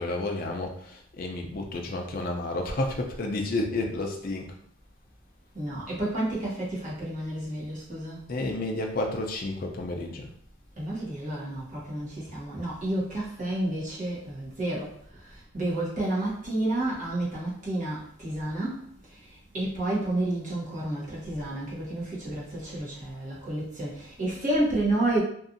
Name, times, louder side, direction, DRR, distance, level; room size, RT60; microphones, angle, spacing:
voice 1, 0.0-4.5 8.3-10.3, left 2 dB, 40° left, 2 dB, 0.4 m, -31 dB
voice 2, 5.5-8.2 10.8-25.2, right 1 dB, 35° right, -6 dB, 0.9 m, -30 dB
2.7 x 2.4 x 2.5 m, 0.64 s
head